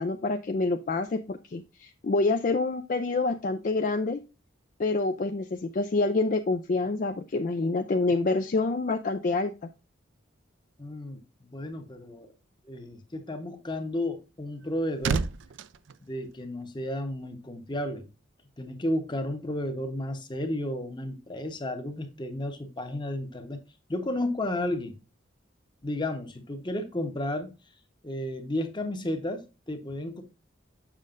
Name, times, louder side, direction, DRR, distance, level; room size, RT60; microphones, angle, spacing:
voice 1, 0.0-4.2 4.8-9.5, left 3 dB, 40° left, 0.4 m, -27 dB
voice 2, 10.8-12.3 12.6-15.2 16.0-18.1 18.6-23.6 23.9-25.0 25.8-27.5 28.0-30.2, left 1 dB, 25° left, 1.0 m, -33 dB
sound 1, 14.3-17.0 17.2-17.5, right 5 dB, 70° right, 0.4 m, -33 dB
7.3 x 6.3 x 2.5 m
head